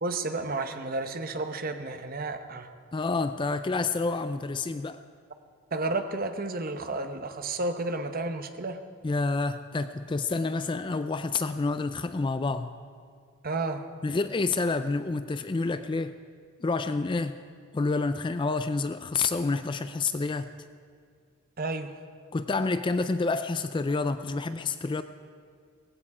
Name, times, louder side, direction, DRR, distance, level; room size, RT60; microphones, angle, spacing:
voice 1, 0.0-2.7 5.7-8.8 13.4-13.9 21.6-22.0, right 2 dB, 40° right, 8 dB, 0.8 m, -31 dB
voice 2, 2.9-5.0 9.0-12.7 14.0-16.2 16.6-17.4 17.7-20.5 22.3-25.0, left 3 dB, 20° left, 11 dB, 0.3 m, -28 dB
17.5 x 16.0 x 4.8 m, 2.1 s
head